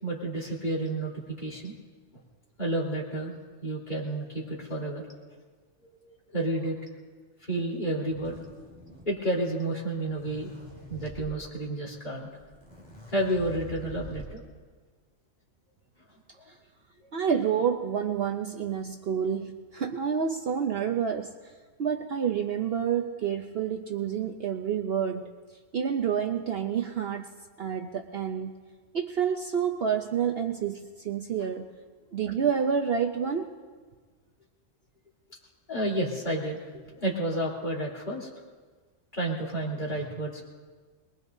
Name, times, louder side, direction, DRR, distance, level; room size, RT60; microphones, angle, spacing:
voice 1, 0.0-1.7 2.6-3.4 3.6-5.1 6.1-6.8 7.4-8.4 9.1-10.5 10.9-12.3 13.1-14.4 16.4-16.5 35.7-38.3 39.1-40.4, right 1 dB, 35° left, -4 dB, 3.9 m, -31 dB
sound 1, 8.1-9.3 9.9-11.3 12.1-12.2 12.4-14.5, equal, 5° left, 3.1 m, -45 dB
voice 2, 17.1-21.3 21.8-25.3 25.7-27.3 27.6-28.6 28.9-31.7 32.1-33.5, right 7 dB, 55° right, 4 dB, 0.9 m, -28 dB
23.5 x 21.5 x 2.7 m, 1.4 s
omnidirectional pair, 1.4 m